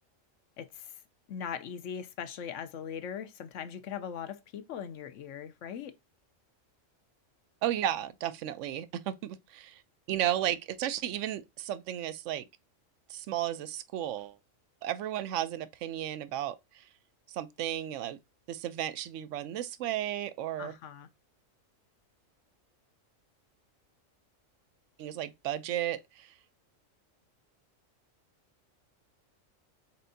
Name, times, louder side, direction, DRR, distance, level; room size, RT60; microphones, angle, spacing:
voice 1, 0.6-1.0 1.3-5.9 20.6-21.1, left 8 dB, 70° left, 1.0 m, -40 dB
voice 2, 7.6-9.8 10.1-12.5 13.1-14.4 14.8-16.8 17.3-18.2 18.5-20.7 25.0-26.3, right 12 dB, 70° right, 0.9 m, -34 dB
4.5 x 4.3 x 2.6 m
omnidirectional pair, 1.4 m